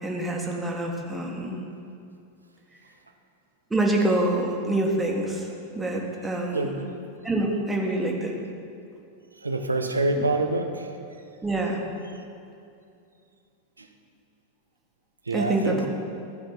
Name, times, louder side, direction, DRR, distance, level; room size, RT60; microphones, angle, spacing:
voice 1, 0.0-1.6 3.7-5.5 5.7-6.7 7.2-8.3 11.4-11.8 15.3-15.9, right 2 dB, 10° right, -1 dB, 1.4 m, -26 dB
voice 2, 9.4-10.9 13.8-13.9 15.3-15.9, right 2 dB, 80° right, 6 dB, 0.7 m, -26 dB
13.5 x 5.1 x 6.0 m, 2.5 s
figure-of-eight pair, 90°, 0 cm